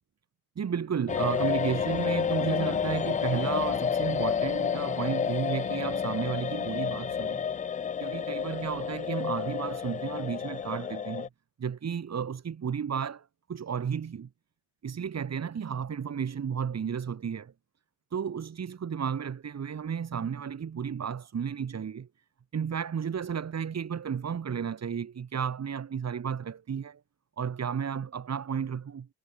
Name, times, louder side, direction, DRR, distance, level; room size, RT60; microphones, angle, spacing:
voice 1, 0.5-7.4 8.0-11.3 11.6-14.3 14.8-17.5 18.1-22.1 22.5-27.0 27.4-29.1, right 7 dB, 35° right, 1.5 m, -33 dB
sound 1, 1.1-11.3, left 7 dB, 20° left, 0.3 m, -30 dB
hypercardioid pair, 60°, 43 cm